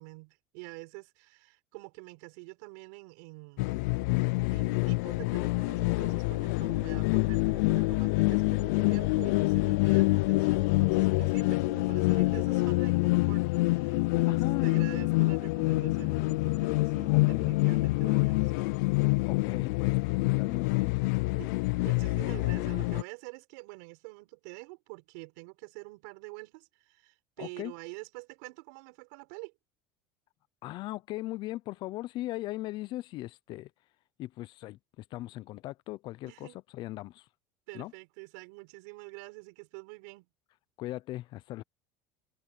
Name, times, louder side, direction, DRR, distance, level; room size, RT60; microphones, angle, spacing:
voice 1, 0.0-3.8 4.5-18.7 21.4-21.5 21.8-29.5 36.2-36.6 37.7-40.3, right 30 dB, 80° right, 5.0 m, -46 dB
sound 1, 3.6-23.0, left 24 dB, 80° left, 0.4 m, -26 dB
voice 2, 14.3-14.7 17.1-17.5 19.2-20.9 27.4-27.7 30.6-33.7 34.2-36.5 36.7-37.2 37.7-37.9 40.8-41.6, left 16 dB, 55° left, 0.7 m, -39 dB
supercardioid pair, 105°, 9 cm